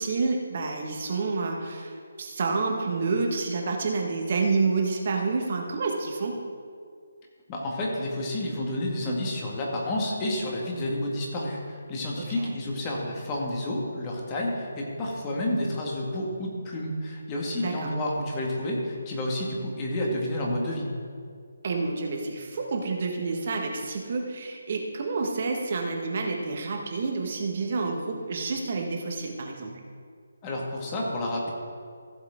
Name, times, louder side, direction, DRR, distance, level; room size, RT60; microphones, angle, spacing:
voice 1, 0.0-6.4 12.2-12.5 17.6-17.9 21.6-29.7, right 4 dB, 45° right, 1 dB, 1.6 m, -29 dB
voice 2, 7.5-20.9 30.4-31.5, left 1 dB, 20° left, -2 dB, 2.0 m, -30 dB
15.0 x 7.3 x 3.8 m, 2.2 s
figure-of-eight pair, 150°, 0 cm